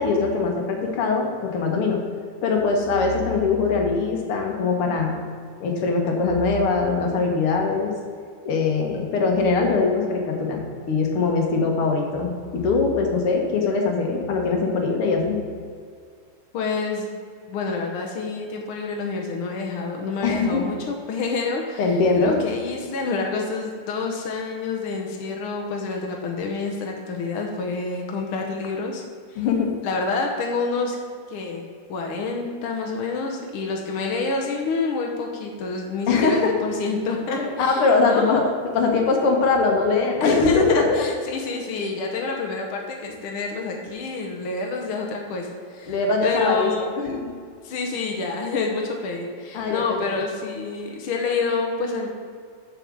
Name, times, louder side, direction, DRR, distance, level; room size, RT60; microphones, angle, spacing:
voice 1, 0.0-2.0 2.4-5.2 5.6-7.9 8.4-15.4 20.2-20.7 21.8-22.5 29.4-29.7 36.1-36.5 37.4-38.4 38.7-41.1 45.9-47.3 49.5-50.2, left 4 dB, 60° left, 1 dB, 1.6 m, -22 dB
voice 2, 16.5-17.1 17.5-21.8 22.1-29.0 29.3-29.4 29.8-31.0 31.3-31.6 31.9-38.5 40.2-45.9 46.2-46.8 47.6-52.1, left 4 dB, 80° left, 1 dB, 1.2 m, -28 dB
7.6 x 4.8 x 7.1 m, 2.1 s
omnidirectional pair, 3.6 m